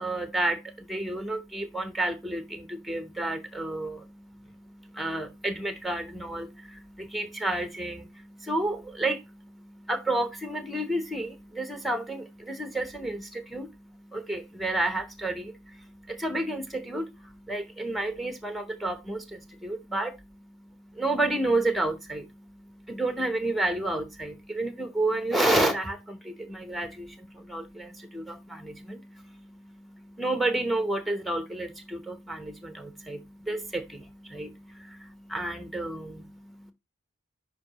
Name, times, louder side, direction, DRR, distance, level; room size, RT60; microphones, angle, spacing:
voice 1, 0.0-36.7, right 2 dB, ahead, 0.8 m, -31 dB
10.5 x 4.6 x 2.9 m
head